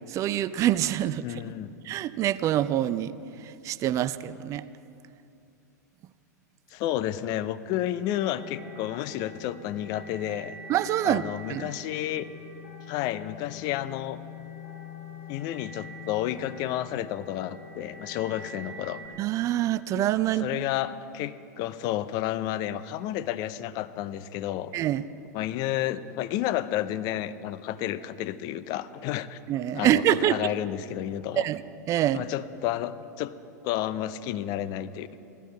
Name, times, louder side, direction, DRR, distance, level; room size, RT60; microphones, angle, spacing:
voice 1, 0.1-1.4 1.9-3.1 3.4-4.6 10.7-11.2 11.5-11.7 19.2-20.5 24.7-25.1 29.5-30.4 31.4-31.6 31.9-32.2, right 12 dB, 35° right, 16 dB, 0.4 m, -25 dB
voice 2, 1.2-1.8 6.7-10.6 11.0-12.3 12.9-14.2 15.3-19.0 20.2-24.7 25.3-29.4 29.7-31.5 32.1-33.3 33.6-35.2, left 12 dB, 45° left, 14 dB, 0.5 m, -31 dB
sound 1, 8.1-19.1, left 3 dB, 60° left, 1.5 m, -44 dB
16.0 x 12.0 x 3.9 m, 2.6 s
figure-of-eight pair, 95°, 10 cm